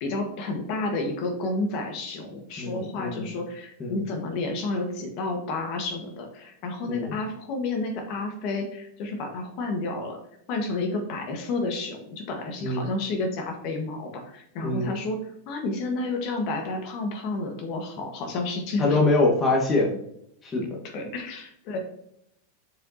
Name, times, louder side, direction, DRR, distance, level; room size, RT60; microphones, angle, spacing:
voice 1, 0.0-10.2 10.5-15.2 15.5-19.0 20.9-21.8, left 2 dB, 50° left, 3 dB, 1.5 m, -30 dB
voice 2, 2.6-3.3 3.8-4.1 6.9-7.2 12.6-12.9 14.6-15.0 18.8-20.0 20.4-20.8, left 2 dB, 20° left, -1 dB, 1.5 m, -24 dB
7.1 x 4.9 x 2.8 m, 0.74 s
supercardioid pair, 125°, 0 cm